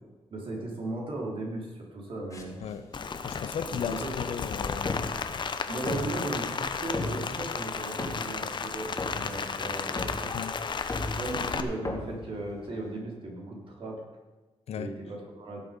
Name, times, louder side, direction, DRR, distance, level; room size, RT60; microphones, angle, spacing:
voice 1, 0.3-2.6 3.7-4.1 5.7-10.3 11.2-14.0 14.7-15.6, right 2 dB, 55° right, -2 dB, 3.6 m, -37 dB
sound 1, 2.3-13.0, left 2 dB, 30° left, 2.2 m, -39 dB
Rain, 2.9-11.6, left 5 dB, 45° left, 0.9 m, -34 dB
voice 2, 3.2-5.0 10.3-10.6 14.7-14.9, left 7 dB, 75° left, 12 dB, 0.7 m, -35 dB
17.5 x 6.8 x 5.2 m, 1.2 s
cardioid pair, 95°, 11 cm